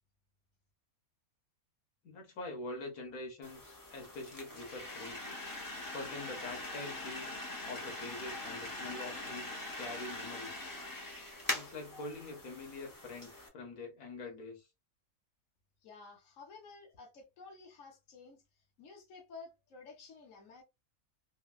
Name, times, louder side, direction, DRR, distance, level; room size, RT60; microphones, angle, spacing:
voice 1, 2.0-5.2 5.9-7.4 7.7-9.5 9.8-10.6 11.5-14.6, left 2 dB, 75° left, 1.6 m, -44 dB
sound 1, 3.4-13.5, left 2 dB, 25° left, 0.5 m, -42 dB
voice 2, 15.8-20.6, left 4 dB, 60° left, 1.2 m, -53 dB
3.6 x 2.2 x 2.3 m
omnidirectional pair, 1.6 m